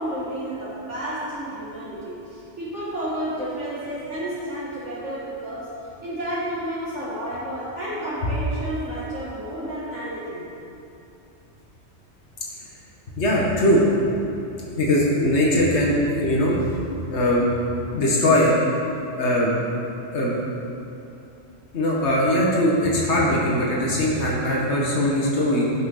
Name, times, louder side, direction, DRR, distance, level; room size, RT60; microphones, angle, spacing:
voice 1, 0.0-5.8 6.0-10.4, right 1 dB, 75° right, -9 dB, 2.2 m, -31 dB
voice 2, 13.1-13.8 14.8-16.7 17.1-17.5 17.9-18.5 19.1-19.5 20.1-20.3 21.7-25.6, left 1 dB, 70° left, -4 dB, 1.8 m, -20 dB
17.0 x 6.5 x 4.0 m, 2.8 s
omnidirectional pair, 1.2 m